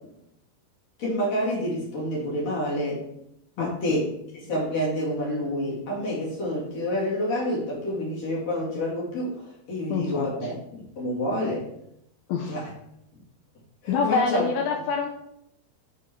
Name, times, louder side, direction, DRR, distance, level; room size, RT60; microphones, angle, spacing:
voice 1, 1.0-3.0 3.6-11.7 12.5-12.7 13.8-14.5, equal, 45° left, -6 dB, 2.6 m, -28 dB
voice 2, 3.6-4.0 9.9-10.3 12.3-12.6 13.9-15.1, left 5 dB, 80° left, 3 dB, 2.2 m, -26 dB
6.6 x 5.3 x 4.2 m, 0.76 s
omnidirectional pair, 4.9 m